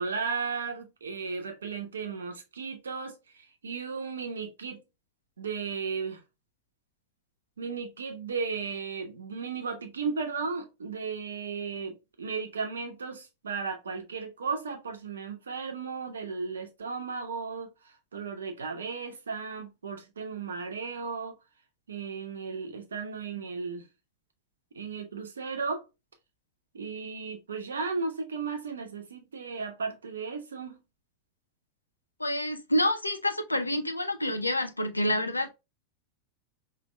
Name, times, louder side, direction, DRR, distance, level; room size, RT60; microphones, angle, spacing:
voice 1, 0.0-4.8 5.4-6.2 7.6-21.4 21.9-23.9 24.7-25.8 26.7-30.8, right 5 dB, 70° right, 1.0 m, -35 dB
voice 2, 32.2-35.5, left 1 dB, 85° left, 0.6 m, -28 dB
5.2 x 3.1 x 2.2 m
figure-of-eight pair, 90°, 0 cm